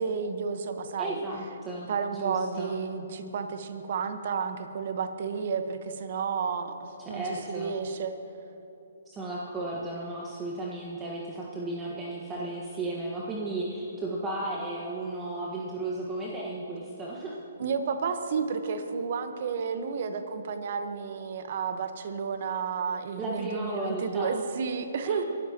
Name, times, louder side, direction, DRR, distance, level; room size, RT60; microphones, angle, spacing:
voice 1, 0.0-1.2 1.9-6.7 7.1-8.2 17.6-25.2, right 5 dB, 55° right, 8 dB, 1.2 m, -31 dB
voice 2, 1.0-2.7 7.0-7.7 9.0-17.3 23.2-24.3 25.0-25.2, right 2 dB, 15° right, -4 dB, 1.5 m, -34 dB
24.0 x 13.0 x 3.0 m, 3.0 s
hypercardioid pair, 140°, 0 cm